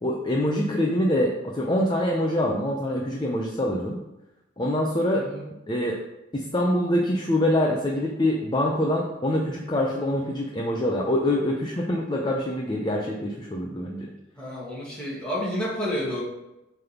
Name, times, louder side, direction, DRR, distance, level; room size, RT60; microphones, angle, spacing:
voice 1, 0.0-4.0 4.6-5.2 5.7-6.0 6.3-14.1, left 1 dB, 20° left, -1 dB, 0.7 m, -25 dB
voice 2, 14.4-16.2, equal, 5° left, -6 dB, 2.0 m, -30 dB
7.4 x 3.5 x 5.8 m, 0.94 s
head